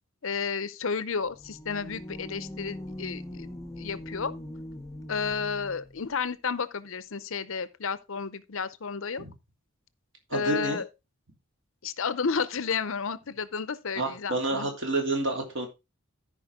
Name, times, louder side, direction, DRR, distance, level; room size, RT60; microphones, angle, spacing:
voice 1, 0.2-3.5 3.8-4.3 5.1-9.2 10.3-10.9 11.8-14.7, left 5 dB, 65° left, 0.7 m, -32 dB
sound 1, 1.2-6.0, left 1 dB, 15° left, 0.8 m, -41 dB
voice 2, 10.3-10.8 14.0-15.7, right 2 dB, 55° right, 3.2 m, -29 dB
13.5 x 5.2 x 3.7 m
head